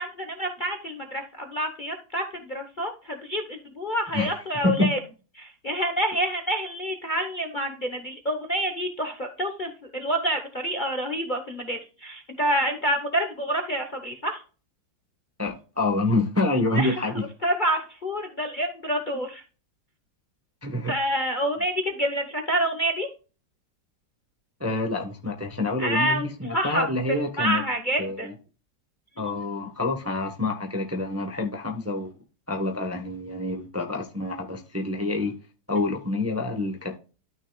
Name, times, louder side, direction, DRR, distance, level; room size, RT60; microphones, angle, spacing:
voice 1, 0.0-5.0 5.4-14.4 16.7-17.1 17.4-19.4 20.9-23.1 25.8-28.3 29.2-29.4, right 1 dB, 35° left, 0.9 m, -28 dB
voice 2, 15.4-17.2 20.6-20.9 24.6-27.6 28.0-28.3 29.2-32.1 32.5-35.3 35.7-36.9, left 2 dB, 10° right, 0.8 m, -27 dB
12.5 x 6.3 x 2.3 m
omnidirectional pair, 2.0 m